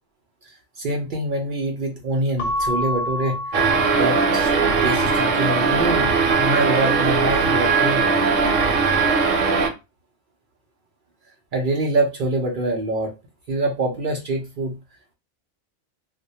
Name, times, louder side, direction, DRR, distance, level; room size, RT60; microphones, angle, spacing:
voice 1, 0.8-4.5 4.8-6.1 6.4-8.2 11.5-13.1 13.5-14.8, right 2 dB, 55° right, 1 dB, 0.6 m, -25 dB
Keyboard (musical) / Bell, 2.4-4.8, left 1 dB, 60° left, 0.7 m, -28 dB
sound 1, 3.5-9.7, right 4 dB, 85° right, 0.9 m, -19 dB
2.2 x 2.1 x 2.7 m, 0.26 s
omnidirectional pair, 1.3 m